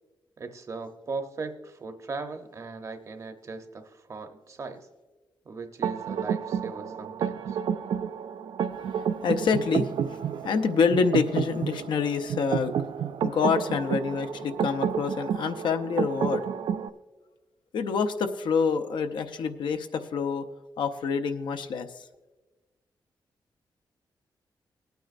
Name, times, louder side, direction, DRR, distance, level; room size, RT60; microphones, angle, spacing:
voice 1, 0.4-4.9 5.5-7.6, right 4 dB, 40° right, 7 dB, 0.8 m, -38 dB
sound 1, 5.8-16.9, right 8 dB, 85° right, 0.4 m, -30 dB
voice 2, 9.0-12.7 13.2-16.4 17.7-20.4 20.8-22.0, left 5 dB, 85° left, 8 dB, 0.7 m, -27 dB
19.0 x 9.2 x 2.5 m, 1.2 s
wide cardioid pair, 140°, 8 cm